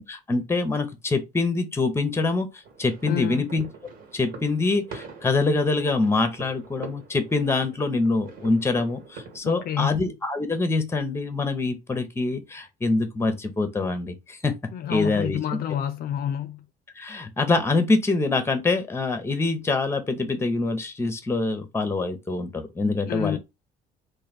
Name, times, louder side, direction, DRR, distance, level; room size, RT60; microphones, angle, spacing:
voice 1, 0.1-2.5 2.8-3.7 4.1-14.5 14.9-15.6 17.0-23.4, left 3 dB, 15° left, 0.8 m, -25 dB
sound 1, 2.6-9.4, right 4 dB, 65° right, 1.8 m, -44 dB
voice 2, 3.0-3.5 9.4-10.0 14.7-16.7 23.1-23.4, left 10 dB, 60° left, 0.5 m, -28 dB
3.2 x 2.6 x 4.1 m
cardioid pair, 110°, 17 cm